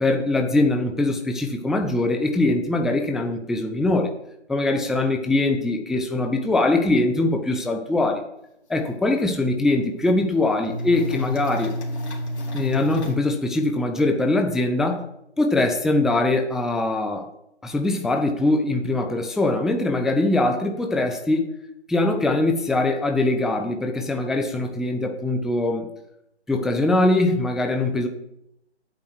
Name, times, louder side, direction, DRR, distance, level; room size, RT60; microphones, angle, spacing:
voice 1, 0.0-4.1 4.5-8.2 8.7-11.7 12.5-15.0 15.4-17.3 17.6-21.4 21.9-25.9 26.5-28.1, left 2 dB, ahead, 4 dB, 0.3 m, -22 dB
sound 1, 8.7-8.8 9.1-9.2 9.7-10.3 10.6-13.2, equal, 75° left, 2.1 m, -30 dB
8.2 x 3.0 x 6.3 m, 0.80 s
hypercardioid pair, 175°, 34 cm